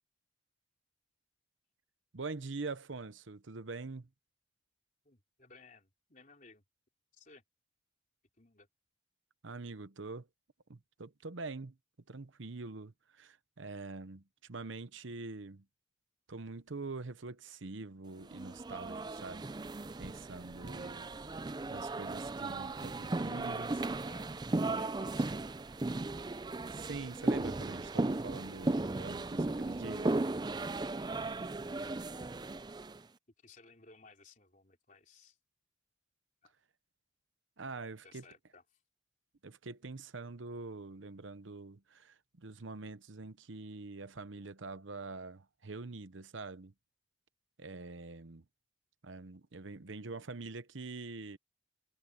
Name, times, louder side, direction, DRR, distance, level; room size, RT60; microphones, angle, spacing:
voice 1, 2.1-4.1 9.4-10.3 10.7-11.7 12.1-15.6 16.3-19.5 20.0-21.1 21.7-23.7 26.7-30.2 37.6-38.2 39.4-46.7 47.6-48.4 49.0-51.4, right 3 dB, 75° right, 0.9 m, -44 dB
voice 2, 5.0-6.6 7.1-7.4 8.4-8.7 20.6-21.1 23.1-24.3 24.7-25.4 30.8-31.4 33.4-35.4 36.4-36.5 38.0-38.8, left 4 dB, 40° left, 3.9 m, -59 dB
sound 1, 18.3-33.0, right 2 dB, 20° right, 0.4 m, -36 dB
head